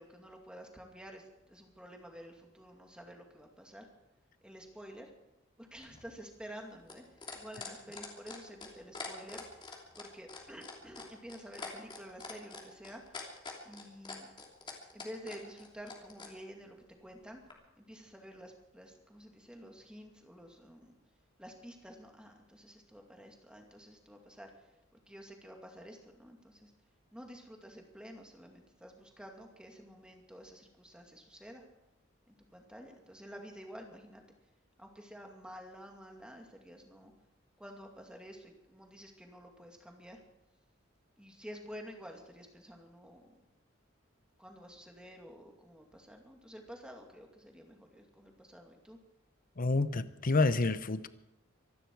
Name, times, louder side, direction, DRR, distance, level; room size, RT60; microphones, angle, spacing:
voice 1, 0.0-3.9 4.4-5.1 5.6-9.6 10.0-13.2 13.6-14.3 14.9-17.4 17.8-21.0 21.4-24.7 25.1-26.7 27.1-31.6 32.3-34.2 34.8-37.1 37.6-40.2 41.2-43.4 44.4-49.0, equal, 5° right, 2 dB, 2.4 m, -50 dB
sound 1, 5.8-16.3 17.5-17.6, left 4 dB, 25° left, 2.9 m, -45 dB
voice 2, 49.6-51.1, left 3 dB, 45° left, 13 dB, 0.8 m, -28 dB
25.0 x 12.0 x 4.7 m, 0.93 s
head